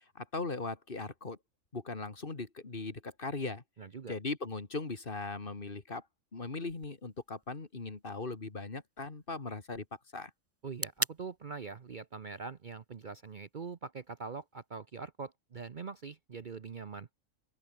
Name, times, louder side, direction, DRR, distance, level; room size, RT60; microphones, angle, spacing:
voice 1, 0.2-1.4 1.7-3.6 4.1-6.0 6.3-9.8 10.1-10.3, left 3 dB, 40° left, 2.3 m, -39 dB
voice 2, 3.8-4.2 10.6-17.1, right 5 dB, 40° right, 0.9 m, -43 dB
sound 1, 6.7-14.7, right 2 dB, 15° right, 0.7 m, -46 dB
open air
omnidirectional pair, 1.4 m